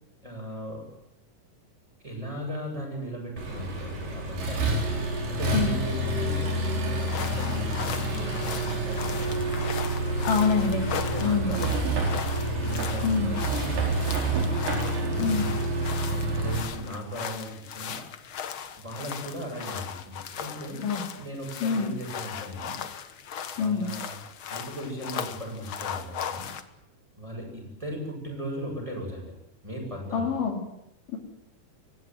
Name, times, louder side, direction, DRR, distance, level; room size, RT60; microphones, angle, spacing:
voice 1, 0.2-0.9 2.0-4.8 5.3-9.5 11.0-14.3 14.9-15.6 16.0-18.0 18.8-22.8 23.5-24.2 24.5-26.5 27.2-29.3 29.6-30.4, equal, 10° right, -1 dB, 8.1 m, -37 dB
Accelerating revving vroom, 3.4-16.6, right 2 dB, 85° right, 6.5 m, -28 dB
sound 1, 7.0-26.6, left 8 dB, 55° left, 1.5 m, -38 dB
voice 2, 10.2-10.9 11.2-11.6 13.0-13.3 15.2-15.5 20.8-21.0 21.6-21.9 23.6-23.9 30.1-30.6, left 5 dB, 75° left, 3 dB, 4.5 m, -25 dB
24.5 x 16.0 x 9.3 m, 0.84 s
omnidirectional pair, 3.8 m